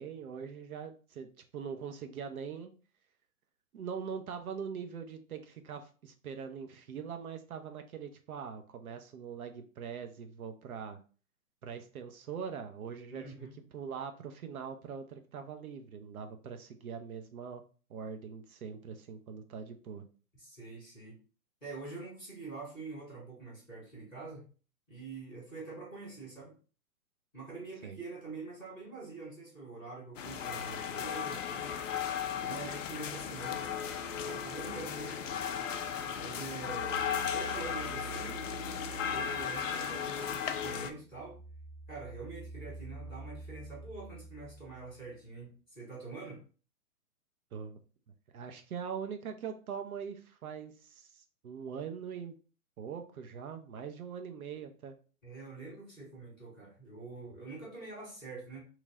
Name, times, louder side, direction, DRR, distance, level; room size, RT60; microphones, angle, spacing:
voice 1, 0.0-2.7 3.7-11.0 11.6-13.5 13.7-17.6 17.9-20.0 27.8-28.0 47.5-47.8 48.3-52.3 52.8-54.9, right 7 dB, 65° right, 6 dB, 0.8 m, -42 dB
voice 2, 13.1-13.5 20.4-21.2 21.6-24.5 24.9-26.5 27.3-31.7 32.4-33.8 34.2-35.4 36.1-38.4 39.1-41.4 41.9-46.4 55.2-58.6, right 3 dB, ahead, -22 dB, 0.4 m, -45 dB
sound 1, 30.2-40.9, left 8 dB, 55° left, 0.5 m, -36 dB
sound 2, 36.4-40.3 40.6-45.2, right 5 dB, 35° right, 1.8 m, -48 dB
3.0 x 2.4 x 4.0 m, 0.38 s
hypercardioid pair, 135°, 47 cm